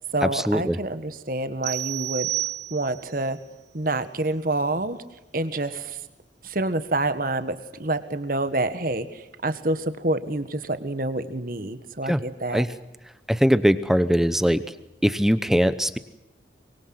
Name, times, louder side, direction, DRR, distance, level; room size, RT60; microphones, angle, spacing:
voice 1, 0.1-2.3 2.7-3.4 3.7-5.0 5.3-6.0 6.4-12.6, right 2 dB, 50° right, 11 dB, 1.6 m, -27 dB
sound 1, 1.6-3.2, right 15 dB, 65° right, 0.9 m, -30 dB
voice 2, 13.3-14.6 15.0-16.0, equal, ahead, 13 dB, 0.9 m, -20 dB
24.0 x 23.0 x 7.9 m, 0.95 s
head